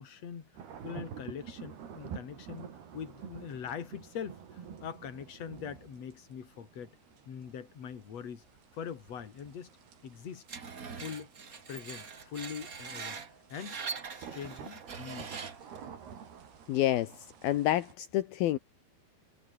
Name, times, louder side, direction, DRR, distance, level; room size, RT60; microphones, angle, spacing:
voice 1, 0.0-7.0 7.3-8.4 8.7-9.7 10.0-10.4 10.9-11.3 11.7-13.2 13.5-13.8 14.2-15.4, left 7 dB, 45° left, 3.6 m, -43 dB
sound 1, 0.5-17.9, right 7 dB, 80° right, 5.5 m, -49 dB
Screech, 10.5-15.8, right 5 dB, 40° right, 1.2 m, -42 dB
voice 2, 16.7-17.1 17.4-18.6, left 14 dB, 75° left, 2.9 m, -28 dB
omnidirectional pair, 4.5 m